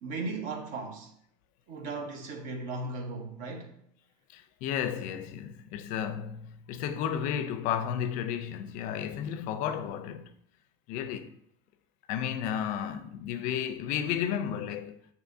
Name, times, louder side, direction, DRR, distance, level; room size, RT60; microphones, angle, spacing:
voice 1, 0.0-1.1 1.7-3.8, right 3 dB, 60° right, 0.9 m, -37 dB
voice 2, 4.3-10.3 10.9-11.3 12.1-15.0, left 9 dB, 60° left, 0.4 m, -33 dB
6.4 x 2.7 x 2.6 m
cardioid pair, 140°, 15 cm